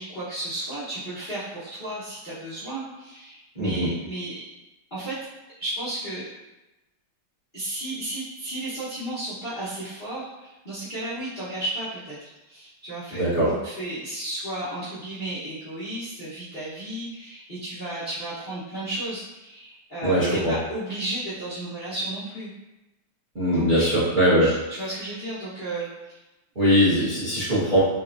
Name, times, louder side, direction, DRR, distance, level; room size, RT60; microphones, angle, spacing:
voice 1, 0.0-4.4 4.9-5.2 5.6-6.3 7.5-22.5 23.5-23.9 24.3-26.2, right 1 dB, 75° left, -13 dB, 0.4 m, -33 dB
voice 2, 3.6-3.9 13.1-13.5 20.0-20.5 23.3-24.5 26.5-27.8, equal, 35° right, -11 dB, 0.8 m, -21 dB
4.1 x 2.4 x 2.4 m, 1.0 s
omnidirectional pair, 2.4 m